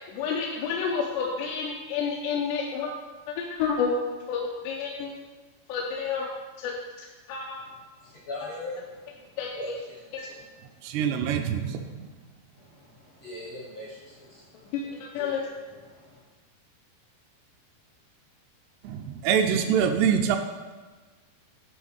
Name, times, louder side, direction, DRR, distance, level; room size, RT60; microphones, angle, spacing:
voice 1, 0.1-2.9 3.3-5.1 5.7-6.3 6.6-7.7 9.4-9.8 10.1-10.3 14.7-15.4, left 5 dB, 90° left, -2 dB, 2.9 m, -30 dB
voice 2, 8.0-10.1 12.5-15.3 15.7-16.2, left 1 dB, 70° left, -5 dB, 1.5 m, -41 dB
voice 3, 10.8-12.1 18.8-20.4, right 7 dB, 80° right, 6 dB, 2.5 m, -25 dB
9.9 x 3.6 x 6.3 m, 1.3 s
omnidirectional pair, 4.8 m